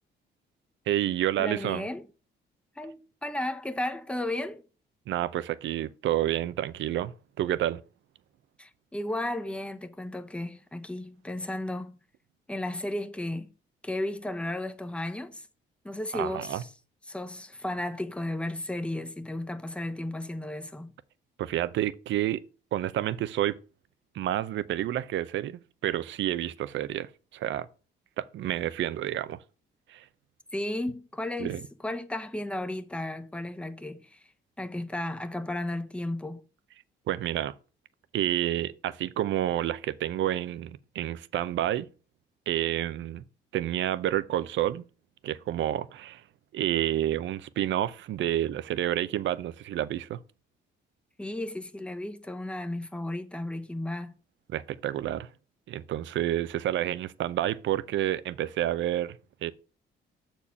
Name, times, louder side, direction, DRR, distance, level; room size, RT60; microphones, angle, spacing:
voice 1, 0.9-1.8 5.1-7.8 16.1-16.6 21.4-22.4 22.7-23.6 24.1-27.7 28.2-29.4 29.9-30.0 31.4-31.6 37.1-37.5 38.1-41.9 42.5-43.2 43.5-44.8 45.2-46.2 46.5-50.2 54.5-55.3 55.7-59.2 59.4-59.5, right 12 dB, 70° right, 0.6 m, -29 dB
voice 2, 1.4-2.0 2.8-4.6 8.6-12.0 12.5-13.5 13.8-15.5 15.8-16.7 17.1-20.9 30.5-34.3 34.6-36.4 51.2-54.1, left 1 dB, 5° left, 0.8 m, -34 dB
7.1 x 4.4 x 5.7 m
cardioid pair, 90°, 20 cm